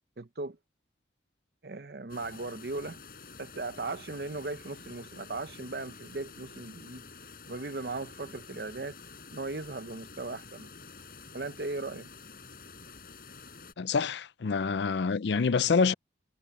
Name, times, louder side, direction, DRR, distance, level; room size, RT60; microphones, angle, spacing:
voice 1, 0.2-0.6 1.6-3.0 3.4-7.0 7.5-9.0 9.3-10.7 11.3-12.1, right 3 dB, 60° right, 0.8 m, -37 dB
sound 1, 2.1-13.7, left 4 dB, 50° left, 7.6 m, -49 dB
voice 2, 13.8-15.9, left 5 dB, 75° left, 0.5 m, -26 dB
head